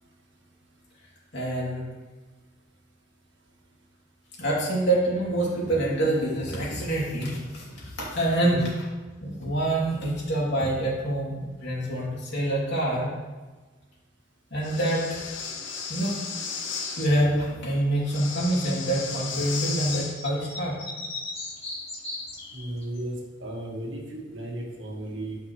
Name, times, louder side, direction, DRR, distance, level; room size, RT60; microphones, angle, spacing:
voice 1, 1.3-1.8 4.4-8.6 9.2-13.1 14.5-15.4 15.9-16.2 17.0-20.7, right 1 dB, 65° left, -5 dB, 2.8 m, -26 dB
voice 2, 8.4-8.7 22.5-25.4, right 1 dB, 80° right, -1 dB, 1.7 m, -35 dB
Breathing, 14.6-17.1 18.0-20.2, left 5 dB, 85° left, 1.1 m, -34 dB
sound 1, 19.9-23.0, left 2 dB, 35° left, 2.2 m, -37 dB
11.5 x 5.7 x 3.2 m, 1.3 s
head